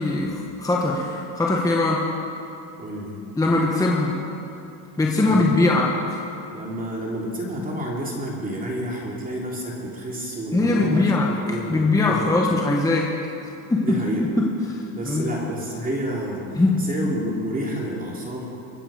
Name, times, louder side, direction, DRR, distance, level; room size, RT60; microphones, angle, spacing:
voice 1, 0.0-2.1 3.4-4.1 5.0-6.2 10.5-11.3 11.7-13.1 13.7-14.0 14.4-15.3 16.5-16.9, left 2 dB, 5° left, -2 dB, 1.3 m, -21 dB
voice 2, 2.8-3.2 5.2-5.6 6.5-11.0 11.4-12.5 13.8-14.2 14.9-16.5 16.7-18.5, right 1 dB, 15° right, -3 dB, 3.0 m, -30 dB
24.5 x 8.7 x 5.1 m, 2.7 s
supercardioid pair, 125°, 47 cm